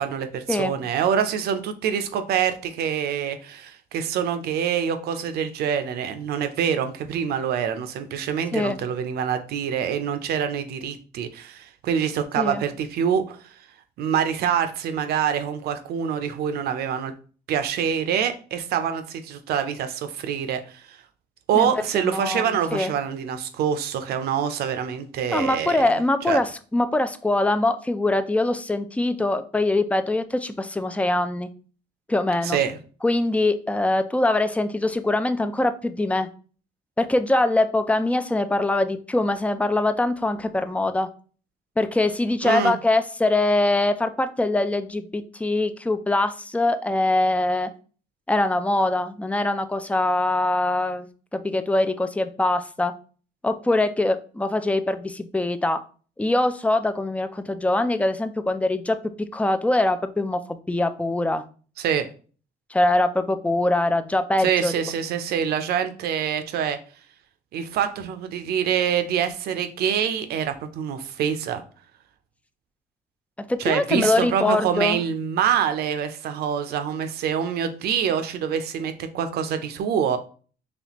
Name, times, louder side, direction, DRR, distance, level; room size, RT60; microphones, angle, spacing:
voice 1, 0.0-13.4 14.0-17.1 17.5-21.0 21.5-25.9 26.3-26.4 32.4-32.8 42.4-42.8 61.8-62.1 64.4-66.8 67.5-71.6 73.6-80.2, right 8 dB, 70° right, 8 dB, 0.6 m, -25 dB
voice 2, 21.5-22.9 25.3-31.5 32.1-32.6 33.0-36.3 37.0-41.1 41.8-47.7 48.3-52.9 53.4-55.8 56.2-61.4 62.7-64.7 73.5-75.0, left 2 dB, 10° left, 10 dB, 0.4 m, -23 dB
4.1 x 3.3 x 2.9 m, 0.39 s
cardioid pair, 110°, 17 cm